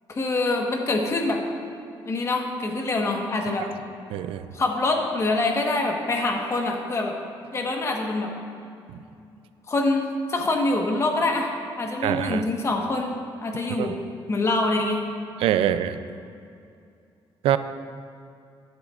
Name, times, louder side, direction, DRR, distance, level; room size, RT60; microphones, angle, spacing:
voice 1, 0.1-1.4 2.0-3.7 4.5-7.2 7.5-8.3 9.7-11.5 11.8-13.1 13.4-13.9 14.3-15.0 15.6-15.7, left 2 dB, 30° left, 2 dB, 1.3 m, -25 dB
voice 2, 4.1-4.4 8.9-9.0 12.0-12.4 13.7-14.0 15.4-16.0 17.4-17.6, right 11 dB, 90° right, 11 dB, 0.4 m, -24 dB
15.5 x 10.5 x 2.5 m, 2.5 s
cardioid pair, 135°, 9 cm